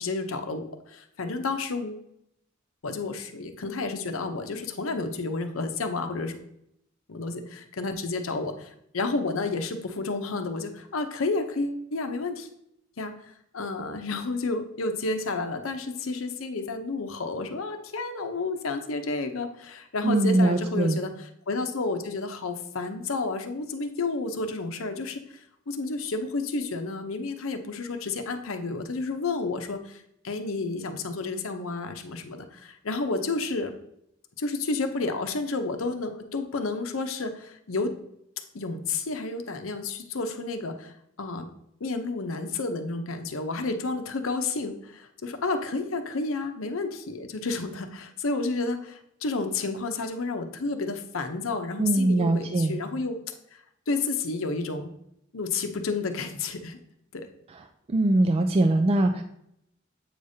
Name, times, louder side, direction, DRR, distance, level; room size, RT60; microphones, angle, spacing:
voice 1, 0.0-2.0 2.8-6.4 7.1-12.5 13.0-33.7 34.4-37.9 38.5-40.9 41.2-41.5 41.8-53.2 53.5-53.6 53.9-54.9 55.3-56.8 57.1-57.3, left 3 dB, 80° left, 6 dB, 0.7 m, -31 dB
voice 2, 20.0-21.0 51.8-52.8 57.9-59.2, right 2 dB, 30° right, 5 dB, 0.3 m, -22 dB
7.8 x 5.0 x 2.7 m, 0.76 s
head